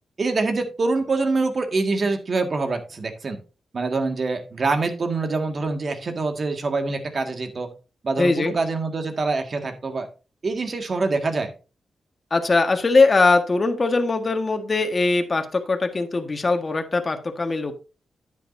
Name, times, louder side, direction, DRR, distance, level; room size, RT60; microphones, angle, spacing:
voice 1, 0.2-3.4 3.7-7.7 8.0-10.1 10.4-11.5, right 3 dB, 50° right, 5 dB, 1.9 m, -25 dB
voice 2, 8.2-8.6 12.3-17.7, left 3 dB, 40° left, 6 dB, 1.6 m, -21 dB
10.0 x 9.3 x 2.7 m, 0.33 s
cardioid pair, 65°, 0 cm